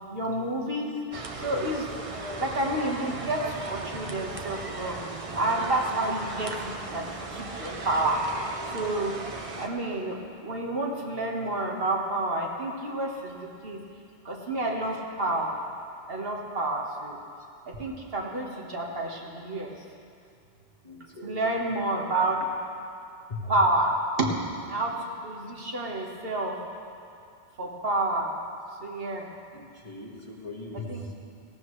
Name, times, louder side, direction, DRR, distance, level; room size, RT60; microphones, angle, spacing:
voice 1, 0.1-0.9 1.4-1.9 2.4-5.0 5.3-7.0 7.3-8.2 8.7-9.2 9.6-13.3 13.6-13.8 14.2-15.5 16.1-17.2 17.8-19.7 21.2-22.4 23.5-24.3 24.7-24.9 25.2-26.6 27.6-28.3 28.8-29.3 30.9-31.2, right 2 dB, 65° right, -1 dB, 1.8 m, -29 dB
sound 1, 1.1-9.7, right 3 dB, 35° right, 0.9 m, -37 dB
voice 2, 20.8-21.4 23.3-23.5 29.5-31.1, left 2 dB, 35° left, -3 dB, 1.9 m, -40 dB
18.0 x 16.0 x 3.2 m, 2.5 s
omnidirectional pair, 1.0 m